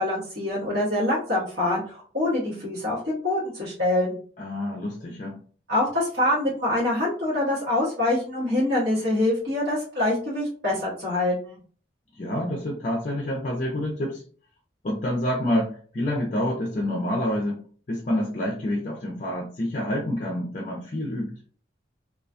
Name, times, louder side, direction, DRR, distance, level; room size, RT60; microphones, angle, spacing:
voice 1, 0.0-4.2 5.7-11.6, left 1 dB, 60° right, -8 dB, 1.1 m, -25 dB
voice 2, 4.4-5.3 12.1-14.2 14.8-17.6 17.9-21.3, left 1 dB, 40° left, -1 dB, 0.5 m, -27 dB
2.4 x 2.2 x 2.5 m, 0.44 s
head